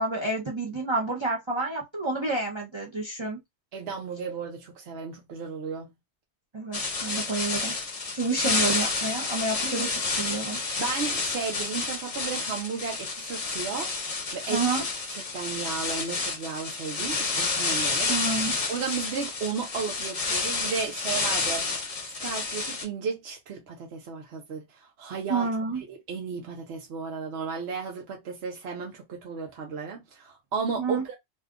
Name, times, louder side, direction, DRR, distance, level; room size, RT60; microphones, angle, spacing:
voice 1, 0.0-3.4 6.5-7.8 8.1-10.6 14.5-14.8 18.1-18.6 25.3-25.8 30.8-31.0, right 3 dB, 30° right, 0.6 m, -29 dB
voice 2, 3.7-5.9 10.8-13.9 14.3-14.6 15.1-18.1 18.7-21.9 22.2-25.5 25.9-31.2, right 5 dB, 70° right, 1.0 m, -34 dB
sound 1, 6.7-22.8, left 4 dB, 40° left, 0.7 m, -30 dB
2.7 x 2.4 x 3.5 m
omnidirectional pair, 1.1 m